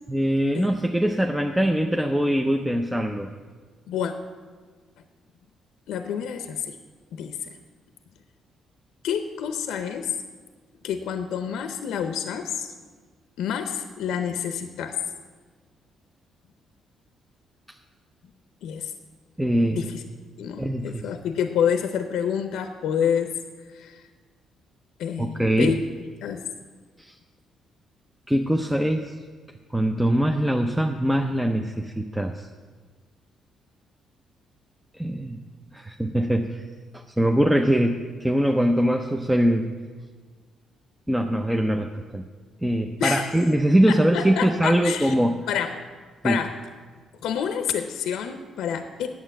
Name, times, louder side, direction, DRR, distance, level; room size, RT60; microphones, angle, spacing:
voice 1, 0.1-3.3 19.4-19.9 20.6-21.0 25.2-25.7 27.0-27.1 28.3-29.1 29.7-32.5 35.0-35.4 35.7-36.6 36.9-39.7 41.1-42.2 42.6-45.4 46.2-46.4, right 1 dB, 5° right, 3 dB, 0.6 m, -22 dB
voice 2, 5.9-6.8 7.1-7.6 9.0-10.2 10.8-12.7 13.4-15.0 18.6-18.9 19.7-20.0 20.4-23.3 23.7-24.0 25.0-25.8 26.2-26.5 43.0-43.3 43.9-45.1 45.5-45.8 46.2-46.6 47.2-49.1, left 8 dB, 85° left, 7 dB, 0.6 m, -28 dB
9.2 x 7.2 x 7.6 m, 1.5 s
cardioid pair, 90°, 0 cm